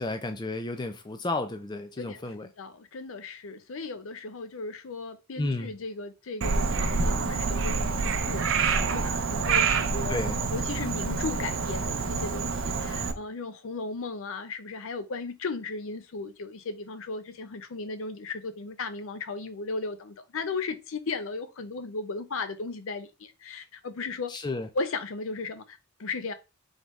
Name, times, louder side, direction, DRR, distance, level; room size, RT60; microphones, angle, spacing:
voice 1, 0.0-2.5 5.4-5.7 10.1-10.4 24.3-24.7, left 2 dB, 20° left, 0.4 m, -32 dB
voice 2, 2.0-8.7 8.9-10.2 10.5-24.3 24.7-26.3, left 3 dB, 70° left, 0.5 m, -36 dB
Frog, 6.4-13.1, right 4 dB, 60° right, 0.6 m, -27 dB
3.9 x 3.5 x 3.1 m
head